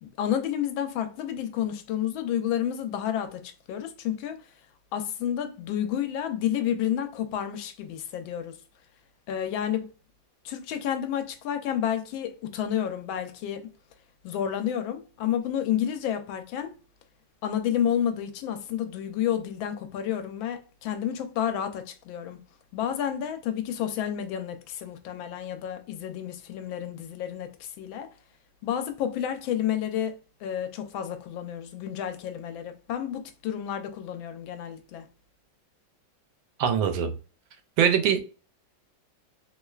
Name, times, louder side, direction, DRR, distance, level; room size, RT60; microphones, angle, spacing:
voice 1, 0.0-4.4 4.9-8.6 9.3-9.9 10.4-13.6 14.2-16.7 17.4-22.4 22.7-28.1 28.6-30.1 30.4-35.0, left 10 dB, 85° left, 1.4 m, -30 dB
voice 2, 36.6-37.2 37.8-38.2, right 8 dB, 90° right, 1.4 m, -22 dB
3.4 x 3.1 x 2.3 m
omnidirectional pair, 2.1 m